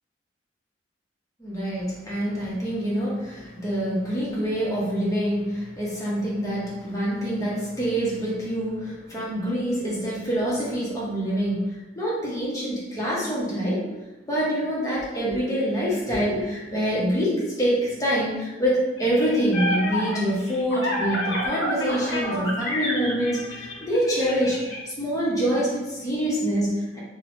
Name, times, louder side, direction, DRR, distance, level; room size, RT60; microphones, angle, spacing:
voice 1, 1.4-13.9 14.2-24.6 24.9-27.0, equal, 20° left, -6 dB, 0.7 m, -26 dB
sound 1, 19.0-24.8, left 1 dB, 80° left, 0.7 m, -29 dB
2.6 x 2.0 x 3.0 m, 1.1 s
head